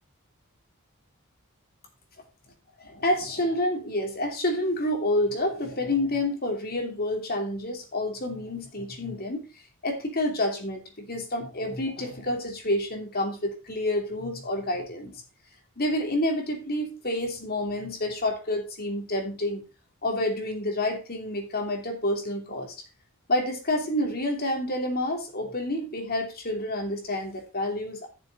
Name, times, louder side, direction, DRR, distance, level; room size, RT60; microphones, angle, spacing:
voice 1, 2.8-9.5 9.8-15.2 15.8-19.6 20.0-22.8 23.3-28.1, left 1 dB, 45° left, 4 dB, 2.8 m, -28 dB
12.0 x 6.8 x 4.0 m, 0.30 s
head